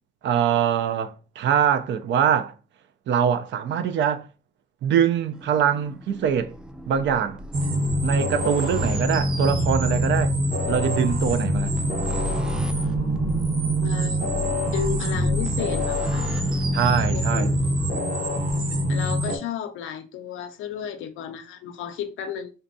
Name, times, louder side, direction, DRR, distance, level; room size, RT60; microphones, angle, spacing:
voice 1, 0.2-2.5 3.1-4.3 4.8-6.5 6.9-7.4 8.0-10.3 10.7-11.7 16.7-17.6, right 8 dB, 70° right, 0.5 m, -23 dB
sound 1, 5.3-18.0, equal, 5° right, 0.3 m, -35 dB
sound 2, 7.5-19.4, equal, 45° right, 1.0 m, -25 dB
voice 2, 13.8-14.3 14.7-16.3 17.1-17.7 18.9-22.5, left 8 dB, 85° left, 0.5 m, -33 dB
3.9 x 2.2 x 2.6 m
cardioid pair, 90°, 20 cm